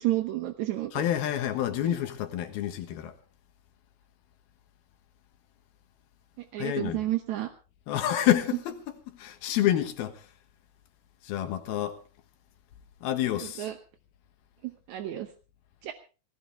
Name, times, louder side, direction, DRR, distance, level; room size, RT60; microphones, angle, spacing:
voice 1, 0.0-1.0 1.8-1.9 6.5-7.5 13.6-13.7 14.9-15.3 15.8-15.9, right 15 dB, 70° right, 1.8 m, -30 dB
voice 2, 0.9-3.2 6.6-7.1 7.9-8.8 9.1-10.3 11.2-12.0 13.0-13.7, left 12 dB, 75° left, 3.2 m, -28 dB
18.5 x 17.5 x 3.5 m
omnidirectional pair, 4.5 m